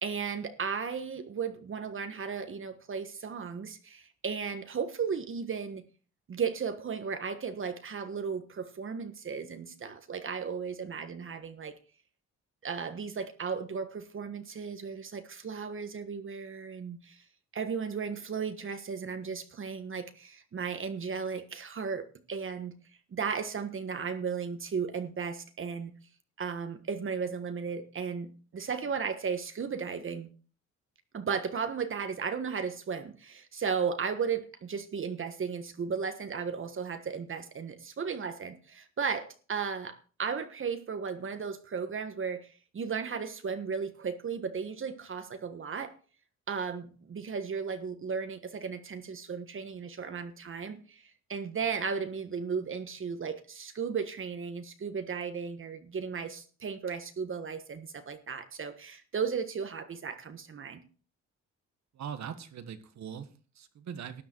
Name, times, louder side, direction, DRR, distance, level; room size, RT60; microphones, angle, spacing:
voice 1, 0.0-5.8 6.3-11.7 12.6-17.2 17.5-22.7 23.1-25.9 26.4-30.3 31.1-45.9 46.5-60.8, right 6 dB, 45° right, 1.4 m, -35 dB
voice 2, 61.9-64.2, right 8 dB, 65° right, 1.6 m, -41 dB
13.0 x 10.0 x 4.6 m
cardioid pair, 90°, 30 cm